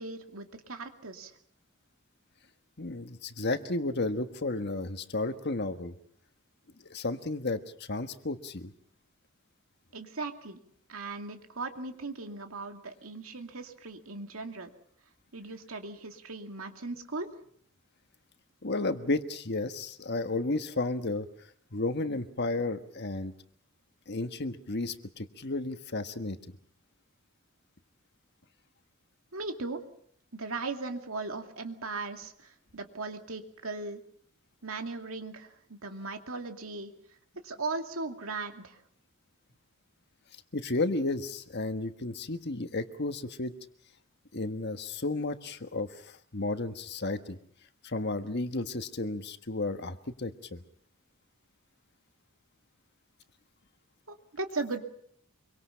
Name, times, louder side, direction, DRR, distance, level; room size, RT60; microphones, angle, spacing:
voice 1, 0.0-1.3 9.9-10.6 10.9-14.7 15.3-17.3 29.3-29.8 30.3-34.0 34.6-36.9 37.4-38.8 54.1-54.8, right 3 dB, 75° right, 5 dB, 2.5 m, -38 dB
voice 2, 2.8-5.9 6.9-7.6 7.9-8.7 18.6-21.3 21.7-23.3 24.1-26.4 40.5-43.5 44.3-47.4 47.8-50.6, left 2 dB, 50° left, 8 dB, 1.5 m, -33 dB
25.5 x 24.0 x 5.8 m, 0.64 s
head